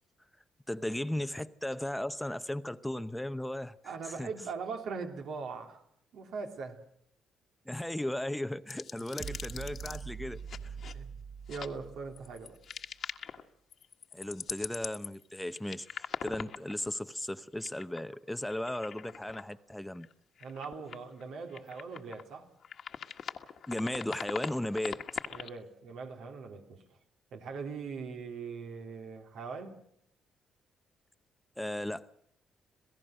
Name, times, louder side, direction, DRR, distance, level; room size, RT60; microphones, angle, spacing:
voice 1, 0.7-4.3 7.7-10.7 14.1-20.1 23.7-25.1 31.6-32.1, left 1 dB, 5° left, 0.8 m, -36 dB
voice 2, 3.8-5.8 6.1-6.8 10.9-11.1 11.5-12.6 20.4-22.4 25.3-26.8 27.3-29.9, right 5 dB, 80° right, 3.2 m, -41 dB
sound 1, 8.7-10.0 10.5-10.9 11.5-11.7 12.2-13.4 13.7-16.9 17.5-18.1 18.4-19.4 19.9-20.1 20.4-21.2 21.5-22.3 22.6-25.5, left 7 dB, 60° left, 1.6 m, -41 dB
sound 2, 9.2-12.6, right 6 dB, 40° right, 0.9 m, -44 dB
27.5 x 17.0 x 6.4 m
cardioid pair, 90°, 0 cm